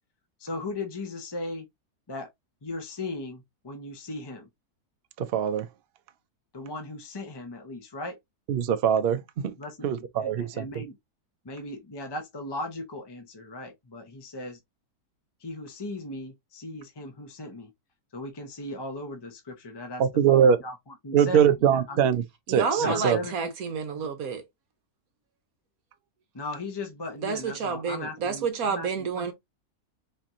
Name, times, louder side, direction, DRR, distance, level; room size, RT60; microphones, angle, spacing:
voice 1, 0.4-1.6 2.1-2.3 2.6-4.5 6.5-8.2 9.6-9.9 10.2-11.0 11.4-14.6 15.4-17.7 18.1-20.0 20.3-22.1 22.8-23.4 23.9-24.1 26.3-29.3, left 2 dB, 30° left, 0.4 m, -37 dB
voice 2, 5.2-5.7 8.5-9.2 9.8-10.8 20.0-20.6 21.1-22.2 22.5-23.2, right 8 dB, 85° right, 0.5 m, -22 dB
voice 3, 22.5-24.4 27.2-29.3, right 5 dB, 70° right, 1.2 m, -29 dB
4.2 x 3.4 x 2.5 m
omnidirectional pair, 1.7 m